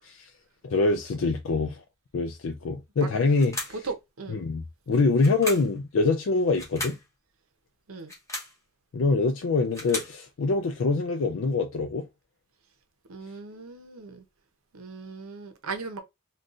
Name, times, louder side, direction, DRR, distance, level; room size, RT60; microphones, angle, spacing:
voice 1, 0.6-1.8 2.1-3.8 4.3-7.0 8.9-12.1, left 3 dB, 60° left, 0.4 m, -25 dB
sound 1, 3.3-3.9 5.2-5.8 6.5-7.0 8.0-8.6 9.4-10.2, left 1 dB, 15° left, 1.0 m, -35 dB
voice 2, 3.8-4.4 7.9-8.1 13.1-14.2 14.7-16.0, right 4 dB, 75° right, 0.7 m, -37 dB
3.8 x 2.3 x 2.4 m
head